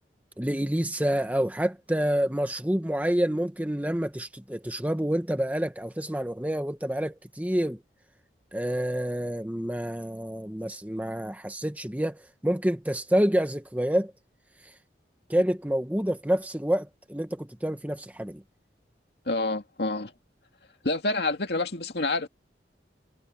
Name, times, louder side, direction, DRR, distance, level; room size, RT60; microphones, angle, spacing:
voice 1, 0.4-7.8 8.5-14.1 15.3-18.4, equal, 10° right, 1.0 m, -28 dB
voice 2, 19.3-20.1 20.8-22.3, left 2 dB, 65° left, 2.3 m, -28 dB
head